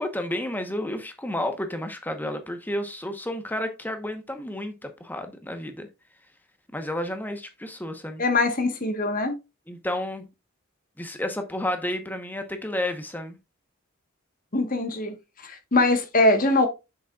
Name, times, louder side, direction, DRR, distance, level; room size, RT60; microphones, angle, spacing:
voice 1, 0.0-5.9 6.7-8.2 9.7-10.3 11.0-13.4, left 1 dB, 10° left, 0.9 m, -31 dB
voice 2, 8.2-9.3 14.5-15.1 15.4-16.7, left 2 dB, 40° left, 1.2 m, -22 dB
7.7 x 6.4 x 2.3 m
head